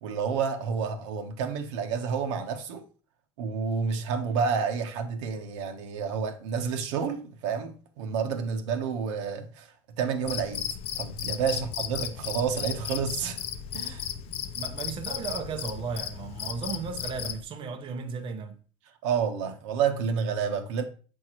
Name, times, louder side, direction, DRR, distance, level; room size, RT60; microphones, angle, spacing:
voice 1, 0.0-2.8 3.4-9.7 10.0-10.6 11.0-13.4 13.7-14.0 19.0-20.8, right 6 dB, 75° right, 1.1 m, -29 dB
Cricket, 10.2-17.4, left 9 dB, 40° left, 0.6 m, -35 dB
voice 2, 14.5-18.6, right 5 dB, 35° right, 0.7 m, -35 dB
7.3 x 4.7 x 3.0 m
supercardioid pair, 125°, 15 cm